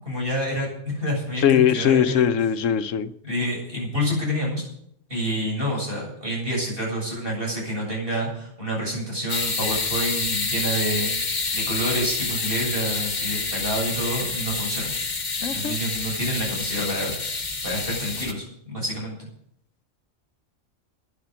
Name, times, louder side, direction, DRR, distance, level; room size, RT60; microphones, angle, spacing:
voice 1, 0.0-2.3 3.2-4.6 5.1-11.1 11.5-14.9 15.5-17.3 17.6-19.3, equal, 45° right, 7.9 m, -28 dB
voice 2, 1.4-3.1 15.4-15.8, left 9 dB, 85° left, 1.1 m, -20 dB
sound 1, 9.3-18.3, left 4 dB, 35° left, 1.3 m, -28 dB
11.5 x 10.0 x 8.2 m
omnidirectional pair, 1.3 m